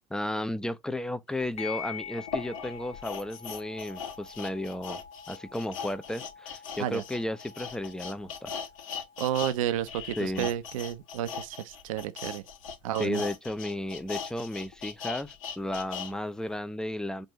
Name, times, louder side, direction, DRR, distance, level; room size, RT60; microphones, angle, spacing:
voice 1, 0.1-5.0 5.3-8.6 10.2-10.5 13.0-17.3, left 1 dB, 5° left, 0.5 m, -34 dB
sound 1, 1.4-1.5 2.2-9.5 9.8-16.1 16.5-16.6, left 6 dB, 85° left, 1.4 m, -39 dB
sound 2, 1.6-10.6, left 8 dB, 40° left, 1.2 m, -46 dB
voice 2, 9.2-12.4 12.8-13.2, right 11 dB, 80° right, 0.6 m, -31 dB
5.3 x 2.6 x 2.9 m
hypercardioid pair, 85°, 17 cm